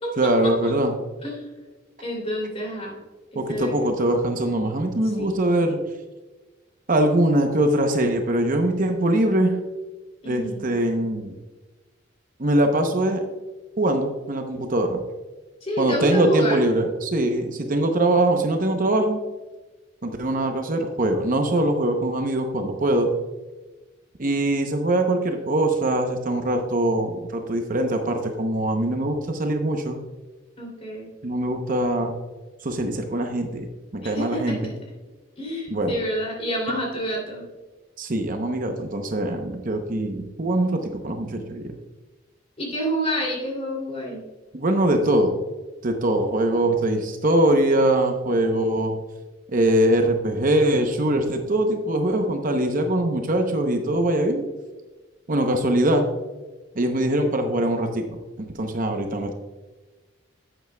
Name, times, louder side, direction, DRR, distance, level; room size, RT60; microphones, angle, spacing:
voice 1, 0.2-0.9 3.4-5.8 6.9-9.6 10.3-11.3 12.4-13.2 13.8-15.0 15.8-19.2 20.0-23.1 24.2-30.0 31.2-32.1 32.6-34.7 35.7-36.0 38.0-41.7 44.5-45.3 45.8-49.0 49.5-54.5 55.3-56.1 56.8-59.3, right 1 dB, 40° right, 4 dB, 0.7 m, -22 dB
voice 2, 2.0-2.9 3.3-4.1 5.2-5.7 10.2-10.7 15.6-16.6 30.6-31.1 34.0-34.7 35.4-37.4 42.6-44.2, equal, 30° left, -1 dB, 2.8 m, -28 dB
11.0 x 8.2 x 2.2 m, 1.2 s
head